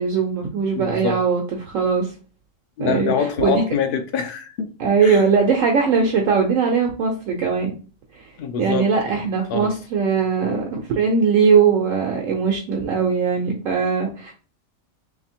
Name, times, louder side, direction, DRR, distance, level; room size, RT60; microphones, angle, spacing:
voice 1, 0.0-2.1 2.8-3.1 3.4-3.6 4.8-7.7 8.6-14.3, right 5 dB, 80° right, 1.1 m, -20 dB
voice 2, 0.8-1.2 2.8-4.7 5.0-5.3 8.4-9.1 9.5-9.7, left 6 dB, 65° left, 0.5 m, -25 dB
3.3 x 2.8 x 4.3 m
omnidirectional pair, 1.4 m